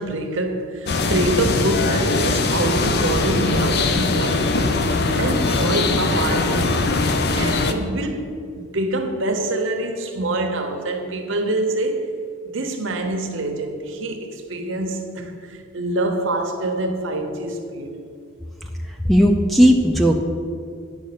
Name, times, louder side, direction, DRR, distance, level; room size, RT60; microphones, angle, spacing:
voice 1, 0.0-4.7 5.2-6.9 7.3-12.1 12.5-17.9, right 2 dB, 60° right, 0.9 m, -25 dB
sound 1, 0.9-7.7, left 3 dB, 50° left, 0.5 m, -21 dB
voice 2, 19.1-20.2, equal, ahead, 0.4 m, -15 dB
9.5 x 5.2 x 6.6 m
head